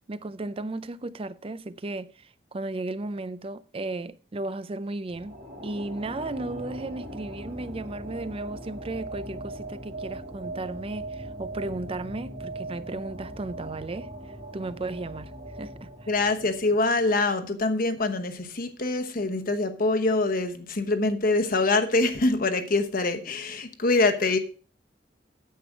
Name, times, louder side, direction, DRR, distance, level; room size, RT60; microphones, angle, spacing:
voice 1, 0.1-5.4 5.6-14.1 14.5-15.3 15.6-16.1, right 2 dB, 30° right, 0.5 m, -35 dB
sound 1, 5.1-17.6, right 2 dB, 55° right, 2.9 m, -40 dB
voice 2, 16.1-24.4, left 2 dB, 50° left, 1.1 m, -24 dB
9.4 x 7.7 x 5.0 m
head